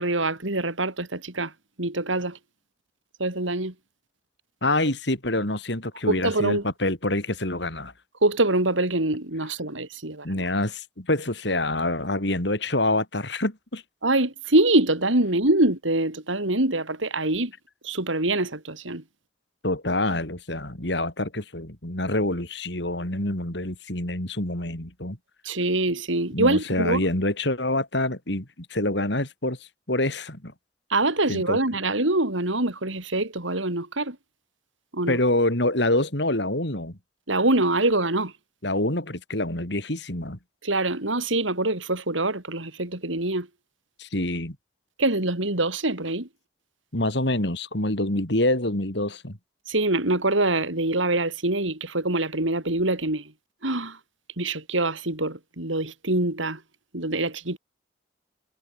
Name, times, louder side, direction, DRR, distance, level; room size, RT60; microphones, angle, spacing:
voice 1, 0.0-1.5 1.8-2.4 3.2-3.7 6.1-6.6 8.2-10.3 14.0-17.5 17.8-19.0 25.4-27.0 30.9-34.2 34.9-35.2 37.3-38.3 40.6-43.5 45.0-46.3 49.7-53.3 53.6-54.0 54.4-56.6 56.9-57.6, right 2 dB, 85° right, 4.3 m, -24 dB
voice 2, 4.6-7.9 10.2-13.8 19.6-25.2 26.3-29.6 29.9-30.5 31.3-31.6 35.1-37.0 38.6-40.4 44.0-44.6 46.9-49.4, left 1 dB, 65° left, 4.4 m, -26 dB
head